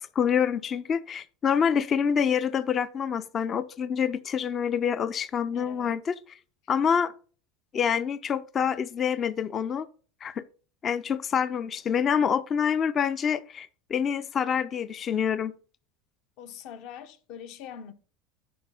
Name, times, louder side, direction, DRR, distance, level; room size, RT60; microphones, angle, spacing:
voice 1, 0.0-6.1 6.7-7.1 7.7-9.9 10.2-10.4 10.8-15.5, left 7 dB, 35° left, 0.4 m, -26 dB
voice 2, 5.5-6.0 16.4-17.9, left 8 dB, 60° left, 0.9 m, -43 dB
8.5 x 5.3 x 3.8 m
supercardioid pair, 120°, 0 cm